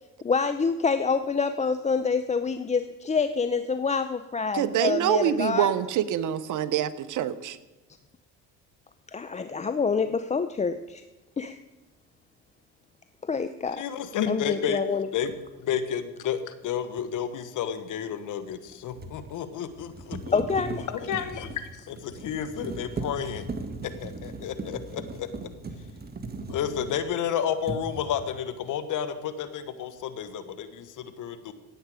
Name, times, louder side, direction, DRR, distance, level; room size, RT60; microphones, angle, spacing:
voice 1, 0.2-5.7 9.1-11.0 11.4-11.6 13.2-13.8 14.3-15.1 20.3-20.9, left 5 dB, 20° left, 10 dB, 0.6 m, -27 dB
voice 2, 4.5-7.6, right 10 dB, 60° right, 15 dB, 0.9 m, -25 dB
voice 3, 13.8-14.8 15.1-15.3 15.6-20.4 20.9-23.5 23.8-25.3 26.5-31.5, left 8 dB, 60° left, 11 dB, 1.4 m, -31 dB
sound 1, 15.3-15.4 18.5-27.3 27.6-28.4, right 3 dB, 25° right, 1.6 m, -38 dB
17.5 x 8.0 x 5.0 m, 1.1 s
supercardioid pair, 80°, 35 cm